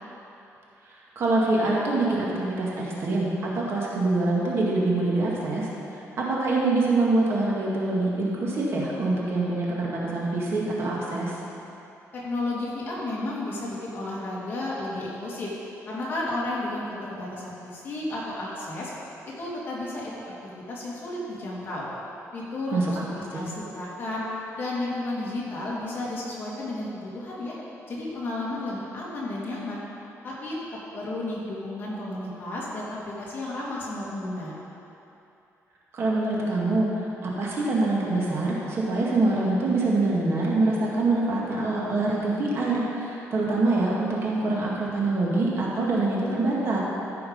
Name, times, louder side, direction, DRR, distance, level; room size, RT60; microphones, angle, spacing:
voice 1, 0.9-5.7 6.2-11.4 22.7-23.0 23.3-23.5 35.9-36.9 37.2-46.8, right 2 dB, 50° right, -4 dB, 1.9 m, -25 dB
voice 2, 12.1-15.5 15.9-18.9 19.4-20.3 20.7-21.9 22.3-24.3 24.6-27.6 27.9-29.8 30.2-30.6 30.9-34.5, left 2 dB, 40° left, -6 dB, 2.6 m, -32 dB
14.0 x 5.8 x 5.5 m, 2.9 s
cardioid pair, 165°, 6 cm